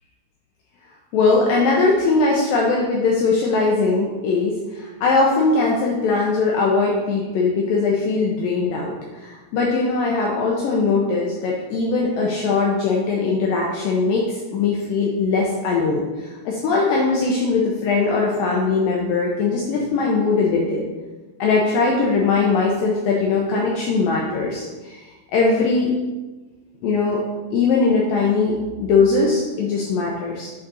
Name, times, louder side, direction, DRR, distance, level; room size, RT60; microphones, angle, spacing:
voice 1, 1.1-20.9 21.4-25.9 26.8-27.2 27.5-30.5, left 4 dB, 90° left, -2 dB, 2.0 m, -20 dB
7.6 x 5.3 x 4.1 m, 1.2 s
omnidirectional pair, 5.0 m